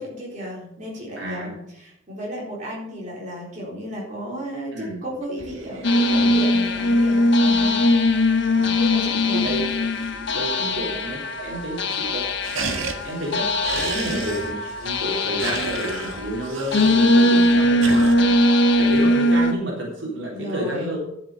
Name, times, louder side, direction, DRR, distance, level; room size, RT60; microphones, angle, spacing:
voice 1, 0.0-7.8 8.8-9.5 10.6-10.8 13.9-14.2 20.3-20.9, equal, 40° right, -5 dB, 4.1 m, -33 dB
voice 2, 1.2-1.5 4.7-5.0 6.1-6.4 8.5-8.8 9.3-9.6 10.3-12.2 12.5-21.0, right 1 dB, 70° right, -3 dB, 3.7 m, -31 dB
sound 1, 5.2-10.5 10.9-11.0 11.2-11.7 12.0-18.1, right 4 dB, 90° right, 1.6 m, -35 dB
sound 2, 5.8-19.5, left 1 dB, 65° left, 1.2 m, -20 dB
11.0 x 7.0 x 6.8 m, 0.78 s
head